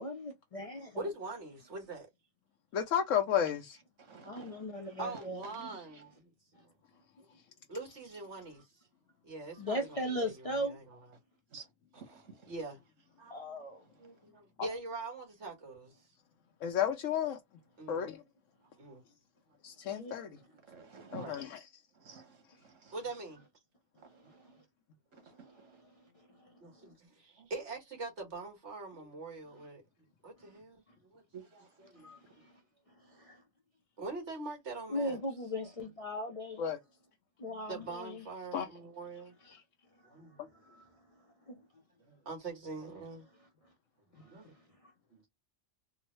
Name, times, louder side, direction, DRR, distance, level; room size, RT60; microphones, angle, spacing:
voice 1, 0.0-1.1 4.0-5.4 6.5-6.6 9.5-10.8 13.3-13.8 19.9-20.2 20.9-21.1 24.1-24.6 25.3-26.9 30.4-30.6 30.9-31.0 32.0-32.6 33.0-33.4 34.9-36.6 37.4-38.2 39.9-41.6 44.1-44.9, equal, 40° left, 0.5 m, -40 dB
voice 2, 1.0-2.1 5.0-6.3 6.6-6.7 7.7-8.7 9.2-11.0 11.9-12.8 13.2-13.3 14.0-16.0 17.8-18.1 18.8-19.0 19.9-20.0 20.8-21.4 22.9-23.4 24.4-24.5 26.6-29.8 30.2-31.2 31.5-32.2 34.0-35.2 37.7-39.3 40.0-40.6 42.0-43.3 44.2-44.5 45.1-45.3, right 3 dB, 65° right, 1.8 m, -44 dB
voice 3, 2.7-3.8 16.6-17.4 17.9-18.2 19.6-20.3 21.1-21.6 36.6-36.8 38.5-38.7, left 9 dB, 85° left, 1.0 m, -32 dB
voice 4, 4.1-4.6 5.5-5.8 11.5-11.7 12.0-12.5 20.7-21.3 22.0-22.9 24.0-24.1 25.4-25.8 31.3-31.5, right 5 dB, 85° right, 1.5 m, -51 dB
3.8 x 2.0 x 3.0 m
omnidirectional pair, 1.3 m